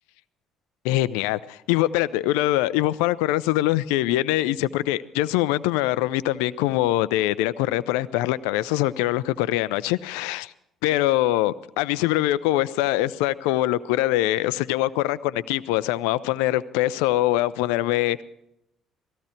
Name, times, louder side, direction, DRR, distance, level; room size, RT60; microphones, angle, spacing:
voice 1, 0.8-10.5 10.8-18.2, left 15 dB, 75° left, 0.5 m, -23 dB
18.0 x 15.5 x 4.4 m
hypercardioid pair, 50°, 0 cm